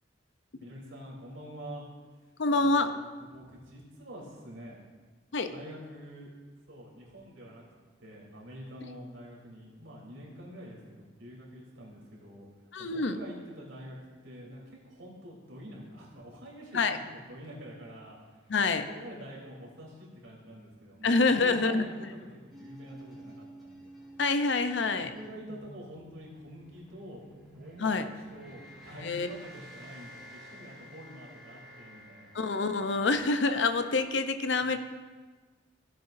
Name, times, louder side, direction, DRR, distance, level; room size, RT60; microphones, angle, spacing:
voice 1, 0.6-1.8 2.5-2.9 3.3-4.8 5.5-6.3 6.7-7.6 8.0-12.5 12.8-14.0 14.2-23.9 24.7-32.3 34.5-34.7, equal, 90° right, -4 dB, 3.2 m, -47 dB
voice 2, 2.4-2.9 5.3-5.5 12.7-13.2 16.7-17.0 18.5-18.8 21.0-21.9 24.2-25.1 27.8-28.1 29.0-29.3 32.3-34.8, left 3 dB, 70° left, 9 dB, 0.6 m, -26 dB
sound 1, 22.5-34.1, equal, ahead, 3.1 m, -51 dB
16.0 x 7.7 x 2.6 m, 1.4 s
head